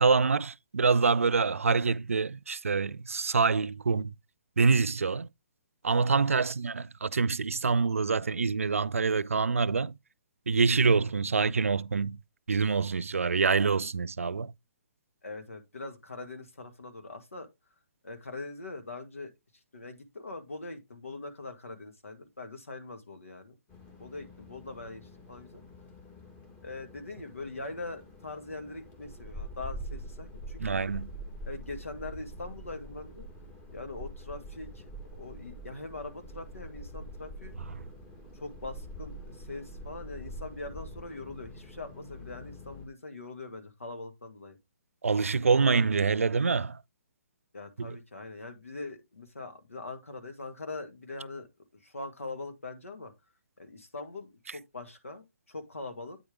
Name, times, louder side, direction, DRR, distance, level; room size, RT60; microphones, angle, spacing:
voice 1, 0.0-4.1 4.6-5.3 5.8-10.0 10.5-12.2 12.5-14.5 30.6-31.1 37.6-37.8 45.0-46.8 47.8-48.0, right 4 dB, 85° right, 0.4 m, -26 dB
voice 2, 15.2-17.5 18.0-19.3 19.7-23.5 24.0-25.6 26.6-30.6 31.4-33.3 33.7-34.9 35.2-37.5 38.3-44.6 47.5-51.5 51.7-53.1 53.6-56.2, left 3 dB, 85° left, 1.7 m, -42 dB
sound 1, 23.7-42.9, equal, 20° left, 2.0 m, -45 dB
8.7 x 4.9 x 3.5 m
figure-of-eight pair, 135°, 7 cm